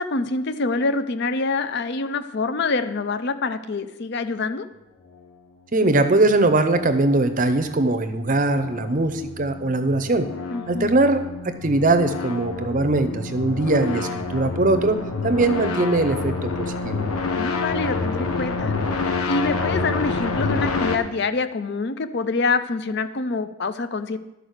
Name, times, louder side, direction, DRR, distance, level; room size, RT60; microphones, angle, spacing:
voice 1, 0.0-4.7 10.5-10.9 17.4-24.2, left 3 dB, 50° left, 11 dB, 0.5 m, -26 dB
voice 2, 5.7-10.3 10.7-11.2 11.6-15.0 15.2-17.0, right 2 dB, 40° right, 9 dB, 0.6 m, -21 dB
sound 1, 6.4-21.0, left 4 dB, 90° left, 1.0 m, -28 dB
11.5 x 4.9 x 6.5 m, 0.96 s
head